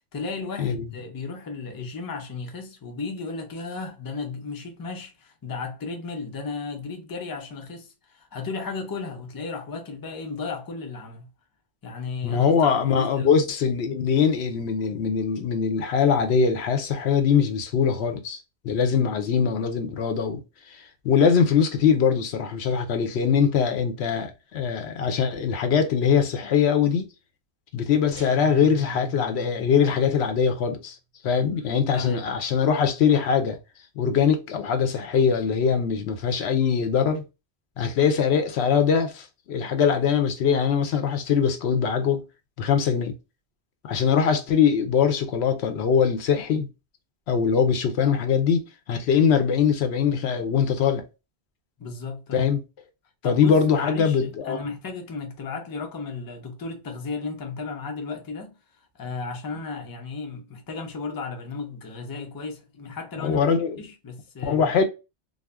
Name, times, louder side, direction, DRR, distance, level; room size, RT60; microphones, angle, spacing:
voice 1, 0.1-11.3 11.8-13.3 31.5-32.2 51.8-52.5 53.2-58.6 59.0-63.5 63.8-64.7, left 4 dB, 30° left, 0.4 m, -34 dB
voice 2, 12.2-18.4 18.6-20.4 20.7-27.1 27.7-30.9 31.2-33.6 34.0-37.2 37.8-42.2 42.6-43.1 43.8-46.7 47.3-51.0 52.3-52.6 53.2-54.6 63.2-63.8 64.4-64.8, left 7 dB, 85° left, 0.9 m, -22 dB
sound 1, 28.1-30.7, right 5 dB, 60° right, 0.6 m, -40 dB
2.5 x 2.0 x 3.3 m
omnidirectional pair, 1.1 m